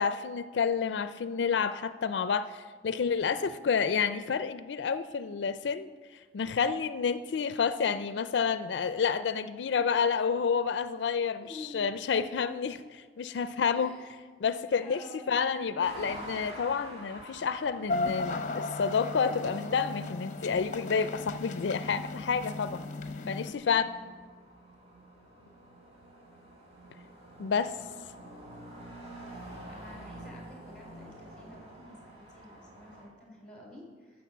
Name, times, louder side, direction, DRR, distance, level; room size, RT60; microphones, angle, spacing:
voice 1, 0.0-5.9 6.3-11.5 11.7-14.0 14.4-15.0 15.3-22.8 23.3-23.8 27.4-27.7, left 6 dB, 80° left, 12 dB, 0.4 m, -29 dB
voice 2, 0.7-1.1 11.4-12.1 13.7-14.2 14.8-15.9 23.7-24.1 29.7-34.2, left 1 dB, 5° left, -1 dB, 3.7 m, -50 dB
sound 1, 15.8-33.0, right 1 dB, 35° right, 3.4 m, -49 dB
sound 2, 17.9-23.5, left 3 dB, 45° left, 0.8 m, -36 dB
13.5 x 6.2 x 7.1 m, 1.5 s
head